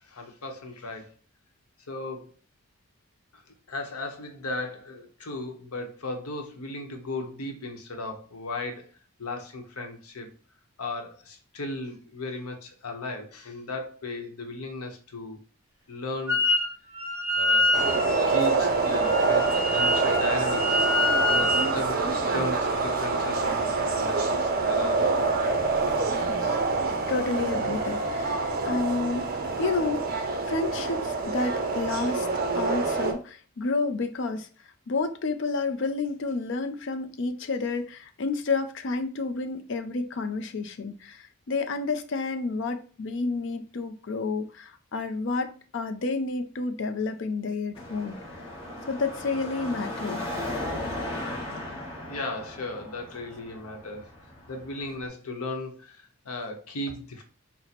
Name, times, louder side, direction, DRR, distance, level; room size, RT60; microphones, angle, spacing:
voice 1, 0.1-1.1 1.9-2.3 3.3-3.4 3.7-8.9 9.2-10.3 10.8-15.4 15.9-16.4 17.3-17.8 18.3-19.5 19.7-20.9 21.3-25.3 25.9-26.1 26.4-26.6 52.1-54.1 54.5-57.2, left 2 dB, 85° left, 0.8 m, -36 dB
Wind instrument woodwind instrument, 16.3-16.7 16.9-21.8, left 1 dB, 10° right, 1.6 m, -26 dB
sound 1, 17.7-33.1, right 3 dB, 40° right, 0.5 m, -26 dB
voice 2, 27.1-29.3 29.6-32.3 32.5-34.5 34.9-48.2 48.9-50.2, left 3 dB, 55° left, 0.4 m, -30 dB
Car passing by / Traffic noise roadway noise / Engine, 47.7-55.1, left 1 dB, 25° left, 1.0 m, -36 dB
4.3 x 2.0 x 4.0 m
head